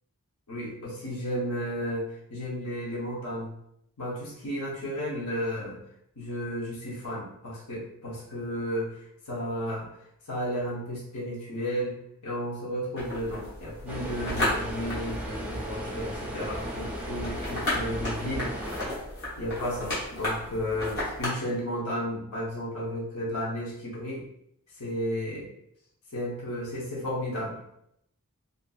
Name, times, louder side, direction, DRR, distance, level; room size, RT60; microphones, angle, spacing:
voice 1, 0.5-3.5 4.0-5.8 6.2-8.9 9.3-9.9 10.3-12.0 12.2-18.5 19.4-24.2 24.8-25.5 26.1-27.6, equal, 80° left, -6 dB, 0.8 m, -33 dB
sound 1, 13.0-21.3, left 1 dB, 50° left, 1.0 m, -34 dB
sound 2, 13.9-18.9, equal, 5° right, 0.4 m, -36 dB
2.5 x 2.5 x 2.3 m, 0.75 s
head